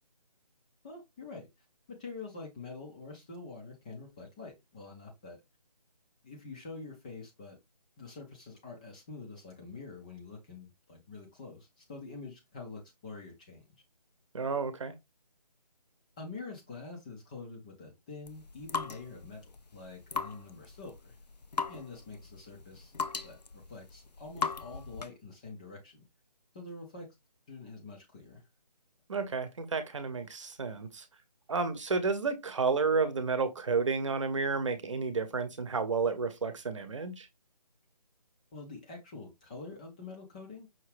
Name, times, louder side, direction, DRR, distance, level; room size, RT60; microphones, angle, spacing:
voice 1, 0.8-1.5 2.0-5.4 6.2-7.6 8.0-13.6 16.2-21.2 21.7-26.0 26.5-27.1 27.5-28.4 38.5-40.7, left 3 dB, 10° left, 0.5 m, -46 dB
voice 2, 14.3-14.9 29.1-31.0 31.5-37.3, right 4 dB, 45° right, 0.9 m, -31 dB
sound 1, 18.3-25.3, left 4 dB, 80° left, 0.7 m, -39 dB
5.8 x 2.8 x 3.2 m
figure-of-eight pair, 155°, 21 cm